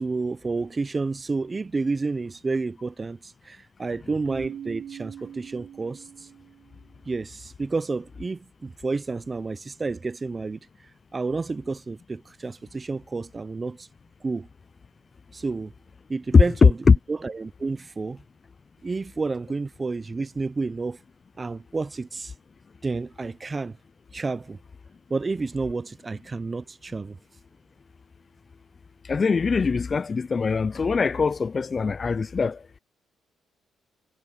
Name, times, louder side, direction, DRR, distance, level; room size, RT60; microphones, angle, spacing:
voice 1, 0.0-3.2 3.5-6.0 7.1-10.6 11.1-13.9 14.2-14.5 15.3-15.7 16.1-16.7 17.2-18.2 18.8-21.0 21.4-22.3 22.8-23.8 24.1-24.6 25.1-27.2, right 3 dB, 25° right, 0.6 m, -30 dB
Keyboard (musical), 4.3-6.9, right 9 dB, 70° right, 1.0 m, -41 dB
voice 2, 16.3-17.0 29.1-32.6, left 5 dB, 35° left, 0.3 m, -20 dB
cardioid pair, 90°, 0 cm